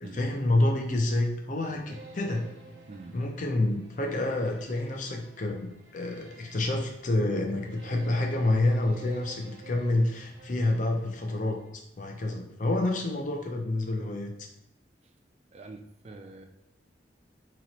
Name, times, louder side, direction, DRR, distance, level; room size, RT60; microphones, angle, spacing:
voice 1, 0.1-2.5 3.1-11.6 12.0-14.3, left 2 dB, 45° left, 2 dB, 0.6 m, -28 dB
sound 1, 1.9-11.7, right 2 dB, 85° right, 0.9 m, -51 dB
voice 2, 15.5-16.5, right 2 dB, 35° right, 5 dB, 0.4 m, -45 dB
3.0 x 2.9 x 4.1 m, 0.83 s
head